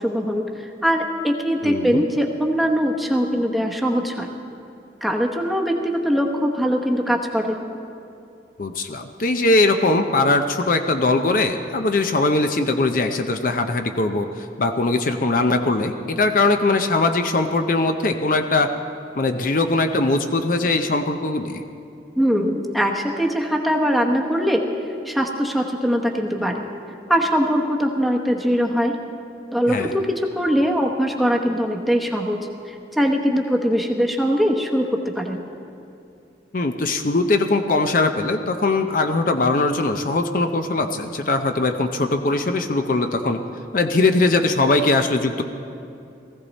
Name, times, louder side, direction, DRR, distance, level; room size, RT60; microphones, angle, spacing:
voice 1, 0.0-4.3 5.0-7.6 22.2-24.6 25.0-26.6 27.1-28.9 29.5-32.4 32.7-34.9 35.2-35.4, equal, ahead, 1 dB, 0.9 m, -21 dB
voice 2, 1.6-2.0 8.6-18.7 19.1-21.6 29.7-29.9 36.5-43.4 43.7-45.4, left 2 dB, 50° left, 6 dB, 0.6 m, -21 dB
19.0 x 15.0 x 4.1 m, 2.5 s
head